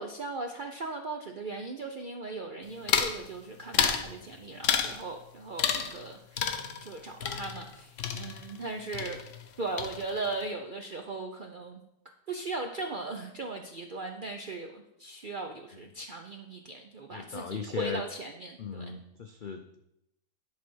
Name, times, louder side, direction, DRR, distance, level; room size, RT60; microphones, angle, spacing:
voice 1, 0.0-6.5 6.8-9.2 9.6-11.8 12.3-18.9, right 3 dB, 65° right, 3 dB, 0.5 m, -38 dB
sound 1, 2.9-3.2 3.7-4.1 4.6-5.0 5.6-6.1 6.4-8.7 8.9-9.5 9.8-10.3, left 7 dB, 60° left, 1.0 m, -30 dB
voice 2, 17.1-18.0 18.6-19.8, left 5 dB, 85° left, 5 dB, 0.4 m, -37 dB
10.5 x 4.1 x 6.2 m, 0.81 s
omnidirectional pair, 1.7 m